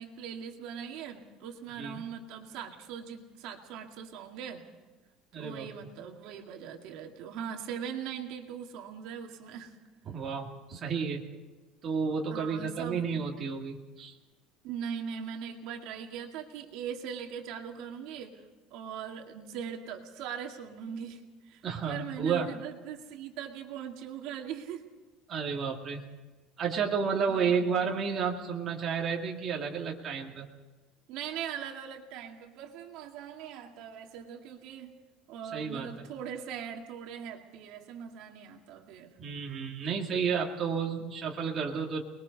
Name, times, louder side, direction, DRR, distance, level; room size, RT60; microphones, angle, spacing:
voice 1, 0.0-4.6 5.4-9.7 12.3-13.0 14.6-18.4 18.7-21.2 21.5-24.8 27.3-27.6 31.1-34.9 35.3-39.1, right 8 dB, 60° right, 2 dB, 2.2 m, -40 dB
voice 2, 5.3-5.7 10.1-11.2 11.8-14.1 21.6-22.5 25.3-26.0 26.6-30.5 35.5-36.1 39.2-42.0, right 6 dB, 25° right, -1 dB, 2.2 m, -31 dB
29.5 x 21.0 x 4.1 m, 1.3 s
cardioid pair, 170°, 0 cm